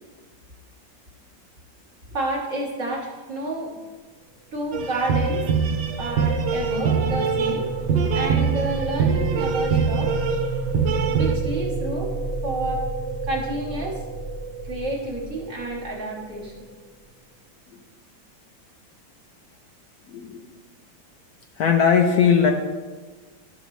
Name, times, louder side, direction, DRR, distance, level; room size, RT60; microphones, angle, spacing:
voice 1, 2.1-3.7 4.5-5.5 6.0-7.6 8.1-10.2 11.1-12.1 12.4-12.9 13.3-14.0 14.6-16.5, right 1 dB, 45° right, -2 dB, 1.6 m, -29 dB
sound 1, 4.7-11.4, right 5 dB, 70° right, 1.3 m, -23 dB
sound 2, 4.9-16.9, right 3 dB, 85° right, 0.6 m, -31 dB
voice 2, 20.1-20.4 21.6-22.5, left 7 dB, 65° left, 3 dB, 1.0 m, -18 dB
12.0 x 6.5 x 3.2 m, 1.3 s
omnidirectional pair, 2.0 m